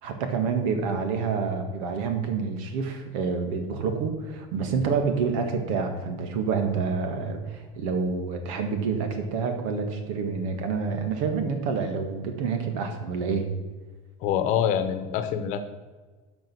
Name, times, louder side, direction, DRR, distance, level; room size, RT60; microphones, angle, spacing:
voice 1, 0.0-13.5, right 5 dB, 80° right, 5 dB, 1.9 m, -28 dB
voice 2, 14.2-15.7, left 9 dB, 50° left, 10 dB, 1.0 m, -25 dB
12.5 x 5.3 x 6.2 m, 1.3 s
cardioid pair, 175°, 17 cm